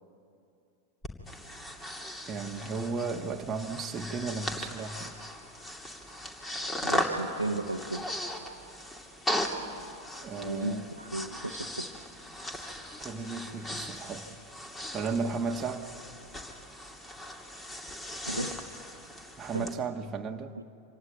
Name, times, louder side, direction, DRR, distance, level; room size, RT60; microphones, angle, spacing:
Breathing, 1.0-19.7, equal, 15° left, 2.7 m, -38 dB
voice 1, 2.3-5.1 10.2-10.9 13.0-14.3 14.9-15.9 19.4-20.6, right 4 dB, 25° right, 2 dB, 1.3 m, -34 dB
voice 2, 6.8-8.1 10.4-11.9 18.3-18.6 19.5-19.7 20.6-20.7, right 2 dB, 90° right, 4 dB, 0.9 m, -34 dB
26.5 x 17.5 x 9.3 m, 2.6 s
figure-of-eight pair, 90°, 0 cm